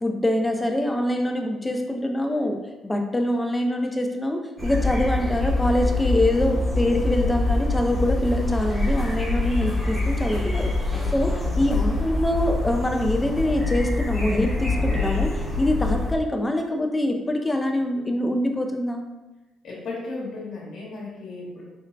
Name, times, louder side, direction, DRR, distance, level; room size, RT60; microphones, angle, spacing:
voice 1, 0.0-2.6 2.8-10.7 11.1-11.3 11.6-19.0, left 1 dB, 15° left, 3 dB, 0.4 m, -24 dB
sound 1, 4.6-16.1, left 2 dB, 5° right, 0.8 m, -25 dB
voice 2, 11.3-11.7 19.6-21.6, left 2 dB, 70° left, -6 dB, 1.1 m, -35 dB
4.4 x 2.0 x 2.5 m, 1.1 s
cardioid pair, 90°, 0 cm